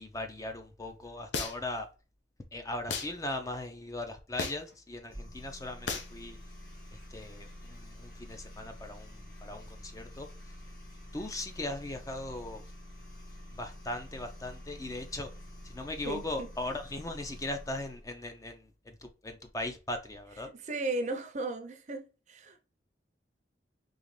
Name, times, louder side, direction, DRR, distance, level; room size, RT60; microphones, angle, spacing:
voice 1, 0.0-1.9 2.5-6.4 7.1-9.1 9.4-10.3 11.1-12.6 13.6-15.3 15.7-18.6 18.9-19.0 19.2-20.5, left 2 dB, 20° left, 0.4 m, -38 dB
sound 1, 1.3-1.8 2.9-3.1 4.4-4.7 5.9-6.1, left 4 dB, 90° left, 0.8 m, -34 dB
sound 2, 5.1-18.1, equal, 55° left, 1.5 m, -48 dB
voice 2, 16.0-16.5 20.5-22.7, right 2 dB, 40° right, 0.6 m, -36 dB
3.9 x 2.9 x 3.1 m
head